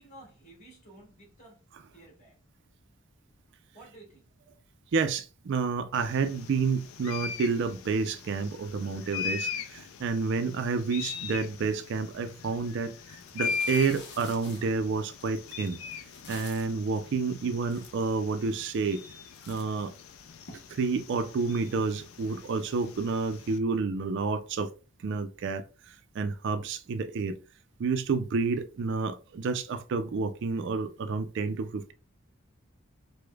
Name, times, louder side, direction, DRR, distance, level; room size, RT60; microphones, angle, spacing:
voice 1, 0.0-1.6 1.9-2.4 3.7-4.3, right 2 dB, 35° left, 1.7 m, -53 dB
voice 2, 4.9-12.9 13.3-15.8 16.3-19.0 19.5-19.9 20.7-24.7 25.0-27.4 27.8-31.9, right 4 dB, 60° right, 0.4 m, -29 dB
sound 1, 5.9-23.6, left 6 dB, 80° left, 0.3 m, -40 dB
sound 2, 12.6-12.7 13.1-16.8 17.4-17.5 17.7-18.4 18.9-19.1 19.3-20.5, left 4 dB, 55° left, 0.8 m, -49 dB
4.9 x 2.1 x 2.2 m
head